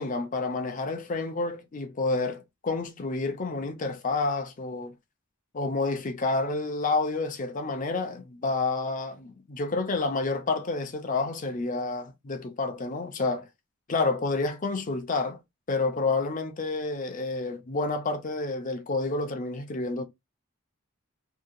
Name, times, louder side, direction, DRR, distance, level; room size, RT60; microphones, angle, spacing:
voice 1, 0.0-4.9 5.5-13.5 13.9-15.4 15.7-20.0, left 3 dB, 35° left, 0.5 m, -29 dB
2.7 x 2.2 x 2.5 m
head